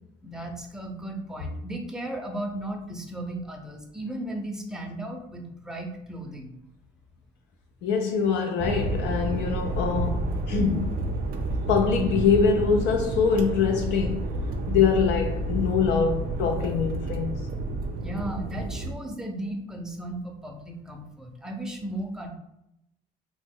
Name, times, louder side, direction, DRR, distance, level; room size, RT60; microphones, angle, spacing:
voice 1, 0.2-6.5 18.0-22.3, right 1 dB, 5° right, 0.5 m, -35 dB
voice 2, 7.8-11.0 11.7-14.3 14.7-17.3, left 6 dB, 75° left, 0.4 m, -24 dB
sound 1, 8.6-18.9, right 2 dB, 50° right, 0.5 m, -30 dB
3.0 x 2.1 x 3.5 m
cardioid pair, 95°, 18 cm